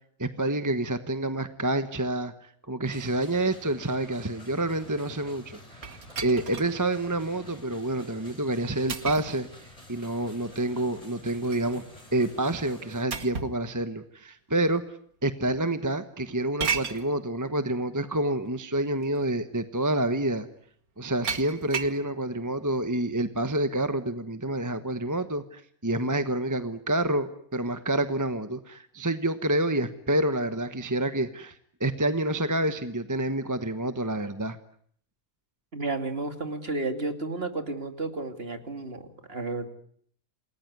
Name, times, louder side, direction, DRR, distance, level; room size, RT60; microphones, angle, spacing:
voice 1, 0.2-5.8 6.2-9.5 9.9-11.8 12.1-14.8 15.2-20.5 21.0-34.6, right 1 dB, 15° right, 10 dB, 1.2 m, -28 dB
sound 1, 2.8-13.0, left 1 dB, 25° left, 4.8 m, -50 dB
sound 2, 5.8-6.7 7.3-7.4 8.9-9.4 11.1-11.7 13.1-13.6 14.6-14.7 16.6-17.0 18.4-18.5 19.0-19.3 21.2-22.0, right 6 dB, 85° right, 2.2 m, -33 dB
voice 2, 35.7-39.7, right 3 dB, 45° right, 7 dB, 2.8 m, -32 dB
28.5 x 20.0 x 9.6 m, 0.64 s
omnidirectional pair, 1.5 m